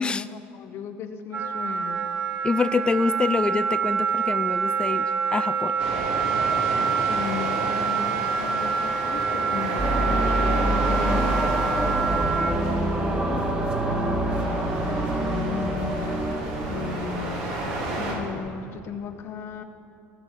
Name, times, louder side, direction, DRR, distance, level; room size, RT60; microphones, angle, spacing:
voice 1, 0.0-2.1 6.7-11.4 11.8-13.3 13.9-16.2 16.7-17.6 17.9-19.6, left 7 dB, 55° left, 6 dB, 0.9 m, -36 dB
Wind instrument woodwind instrument, 1.3-12.6, right 6 dB, 45° right, 2.7 m, -26 dB
voice 2, 2.4-5.8, left 4 dB, 20° left, 12 dB, 0.4 m, -26 dB
sound 1, 5.8-18.1, right 1 dB, 85° right, 3.7 m, -32 dB
sound 2, 9.8-17.1, right 1 dB, 20° right, 1.7 m, -26 dB
17.0 x 6.1 x 8.2 m, 2.6 s
supercardioid pair, 100°, 5 cm